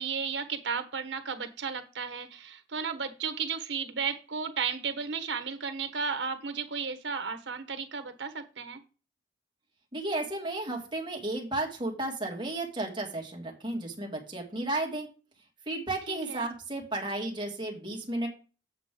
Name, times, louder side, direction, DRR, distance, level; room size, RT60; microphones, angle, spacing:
voice 1, 0.0-8.8 16.1-16.5, right 6 dB, 85° right, 8 dB, 1.2 m, -34 dB
voice 2, 9.9-15.1 15.7-18.3, right 2 dB, 25° right, 0 dB, 2.1 m, -33 dB
8.3 x 7.5 x 3.8 m, 0.35 s
head